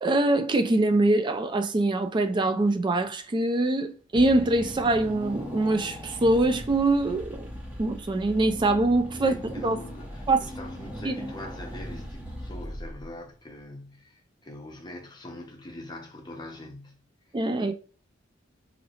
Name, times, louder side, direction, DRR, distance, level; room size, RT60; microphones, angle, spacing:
voice 1, 0.0-7.5 7.8-9.3 9.6-9.8 10.3-10.4 11.0-11.2 17.3-17.7, right 2 dB, 25° right, 0.3 m, -23 dB
Car / Engine, 4.1-13.3, equal, 5° right, 0.8 m, -39 dB
voice 2, 9.2-17.0 17.7-17.8, left 1 dB, 20° left, 0.7 m, -43 dB
3.0 x 2.7 x 2.8 m
head